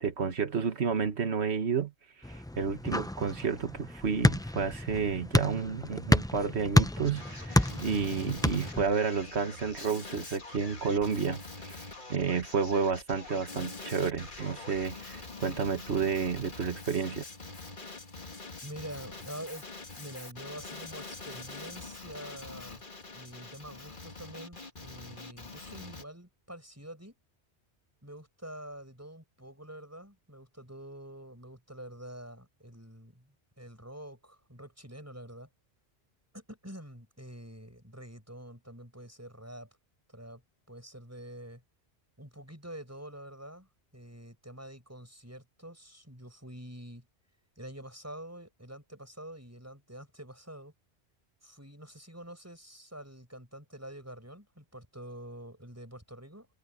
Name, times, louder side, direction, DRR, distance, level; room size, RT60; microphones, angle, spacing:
voice 1, 0.0-1.9 2.3-17.2, right 5 dB, 80° right, 1.7 m, -31 dB
sound 1, 2.2-8.9, left 1 dB, 5° left, 0.3 m, -29 dB
Male speech man speaking, 7.0-26.0, left 3 dB, 50° left, 2.2 m, -44 dB
voice 2, 18.6-19.7 20.0-22.8 23.1-27.1 28.0-35.5 36.3-39.7 40.1-40.4 40.7-41.6 42.2-47.1 47.6-50.7 51.4-56.5, right 1 dB, 15° right, 7.1 m, -46 dB
omnidirectional pair, 1.1 m